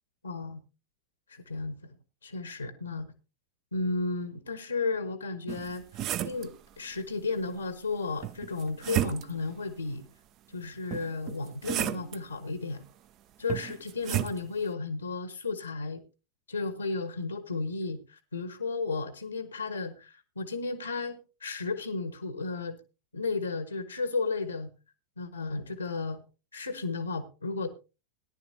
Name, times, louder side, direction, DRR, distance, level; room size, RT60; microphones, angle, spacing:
voice 1, 0.2-0.6 1.3-2.0 2.2-3.1 3.7-5.8 6.2-10.1 10.5-12.8 13.4-16.0 16.5-22.8 23.1-24.7 25.2-26.2 26.5-27.7, left 3 dB, 80° left, 12 dB, 1.2 m, -33 dB
sound 1, 5.5-6.5 8.2-9.5 10.9-12.2 13.5-14.4, right 12 dB, 35° right, 0.5 m, -32 dB
18.0 x 10.5 x 2.7 m, 0.30 s
figure-of-eight pair, 90°, 0 cm